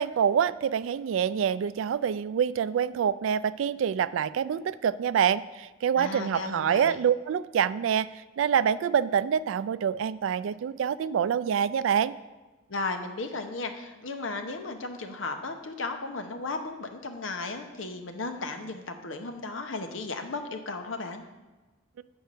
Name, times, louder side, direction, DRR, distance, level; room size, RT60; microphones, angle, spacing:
voice 1, 0.0-8.1 8.4-12.1, right 8 dB, 85° right, 16 dB, 0.3 m, -26 dB
voice 2, 6.0-7.0 12.7-21.2, left 3 dB, 85° left, 6 dB, 0.9 m, -35 dB
8.3 x 4.5 x 6.5 m, 1.2 s
head